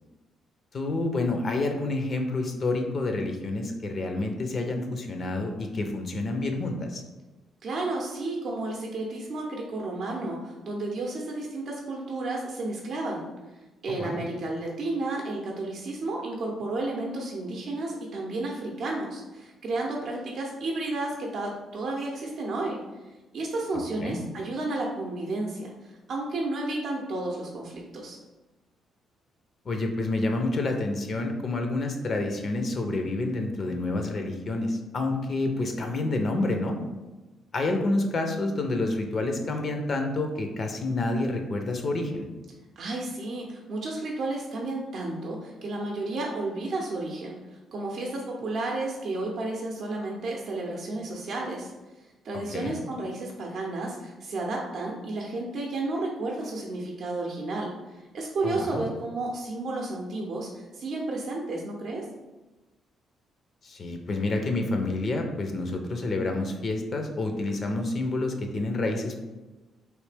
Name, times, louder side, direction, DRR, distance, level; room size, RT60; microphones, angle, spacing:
voice 1, 0.7-7.0 13.9-14.2 23.7-24.2 29.6-36.8 37.5-42.3 52.5-52.8 58.4-58.9 63.6-69.2, left 2 dB, 45° left, 4 dB, 0.5 m, -28 dB
voice 2, 7.6-13.3 13.8-22.8 23.3-28.2 42.8-51.7 52.2-62.0, right 2 dB, 60° right, -1 dB, 0.6 m, -32 dB
3.2 x 2.8 x 3.3 m, 1.1 s
cardioid pair, 90°, 0 cm